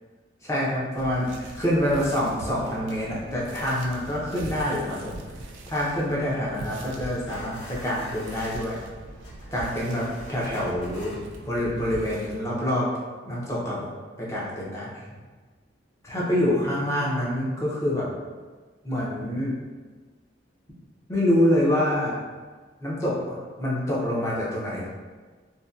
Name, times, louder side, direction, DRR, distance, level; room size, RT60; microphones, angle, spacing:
voice 1, 0.4-5.2 5.7-8.8 9.5-12.9 13.3-13.9 14.2-15.0 16.0-18.1 18.8-19.6 21.1-22.2 22.8-24.9, left 1 dB, 15° left, -6 dB, 0.5 m, -26 dB
sound 1, 1.0-12.4, right 2 dB, 85° right, 0.3 m, -41 dB
sound 2, 7.3-8.5 9.2-11.2, equal, 70° left, 0.5 m, -45 dB
2.6 x 2.1 x 2.3 m, 1.4 s
head